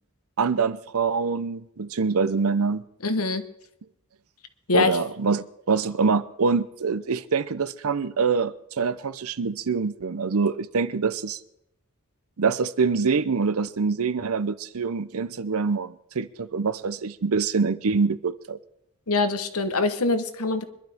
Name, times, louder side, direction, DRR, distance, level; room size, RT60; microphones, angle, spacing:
voice 1, 0.4-2.9 4.7-11.4 12.4-18.6, right 5 dB, 70° right, 0.7 m, -25 dB
voice 2, 3.0-3.4 4.7-5.0 19.1-20.6, left 3 dB, 75° left, 1.2 m, -24 dB
24.5 x 12.0 x 3.6 m
head